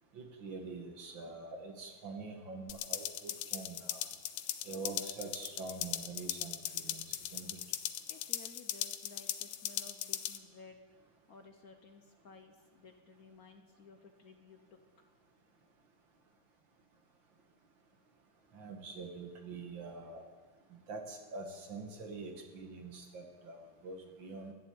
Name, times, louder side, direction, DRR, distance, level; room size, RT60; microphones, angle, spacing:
voice 1, 0.1-4.1 4.6-7.6 18.5-20.2 20.9-24.5, right 3 dB, 65° right, 3 dB, 2.4 m, -45 dB
sound 1, 2.7-10.4, left 11 dB, 80° left, 1.5 m, -39 dB
voice 2, 8.1-10.8 11.3-14.8, left 4 dB, 55° left, 5 dB, 1.2 m, -56 dB
11.5 x 11.0 x 8.6 m, 1.4 s
omnidirectional pair, 2.3 m